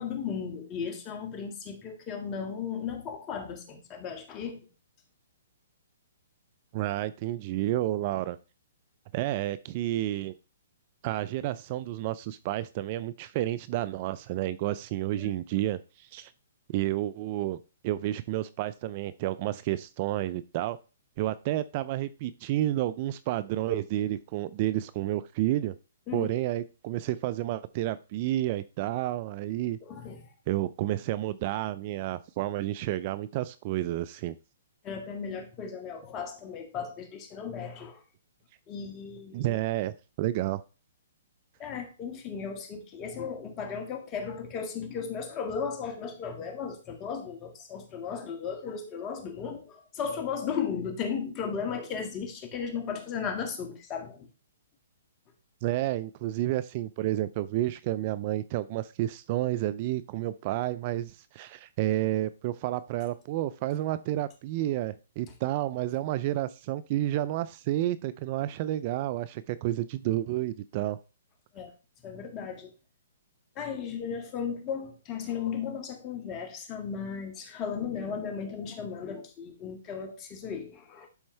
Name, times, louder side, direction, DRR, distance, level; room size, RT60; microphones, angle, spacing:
voice 1, 0.0-4.7 15.2-15.4 26.1-26.3 29.8-30.2 34.8-38.0 38.7-39.6 41.6-54.2 71.5-71.7 72.0-72.7 73.6-81.1, left 6 dB, 25° left, 4 dB, 1.9 m, -35 dB
voice 2, 6.7-8.4 9.1-10.3 11.0-16.3 16.7-17.6 17.8-20.8 21.2-25.7 26.1-29.8 30.5-34.3 39.3-40.6 55.6-71.0, right 14 dB, 40° right, 16 dB, 0.4 m, -30 dB
11.5 x 4.4 x 3.3 m, 0.31 s
hypercardioid pair, 140°, 0 cm